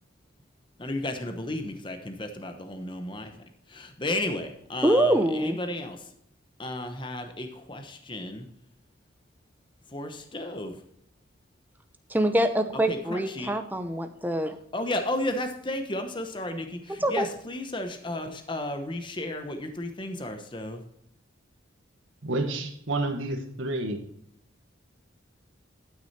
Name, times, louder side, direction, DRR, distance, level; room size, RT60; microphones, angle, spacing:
voice 1, 0.8-3.3 3.7-6.1 6.6-8.5 9.9-10.8 12.9-13.5 14.7-20.8, left 1 dB, 25° left, 6 dB, 1.0 m, -33 dB
voice 2, 4.8-5.6 12.1-14.6 16.9-17.3, right 1 dB, 10° right, 7 dB, 0.7 m, -24 dB
voice 3, 22.2-24.0, right 2 dB, 75° right, 4 dB, 1.4 m, -29 dB
12.0 x 6.3 x 4.2 m, 0.72 s
head